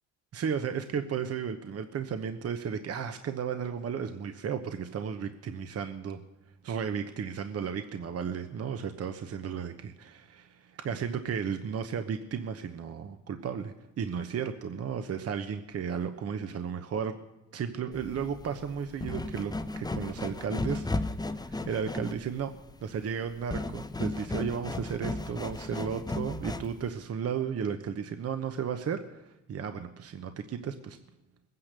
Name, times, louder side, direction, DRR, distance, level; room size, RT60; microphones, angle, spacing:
voice 1, 0.3-6.2 6.6-17.2 17.5-31.0, right 7 dB, 55° right, 8 dB, 1.0 m, -34 dB
sound 1, 17.9-26.9, left 2 dB, 15° left, 0.9 m, -35 dB
21.0 x 9.7 x 6.7 m, 0.99 s
cardioid pair, 90°, 30 cm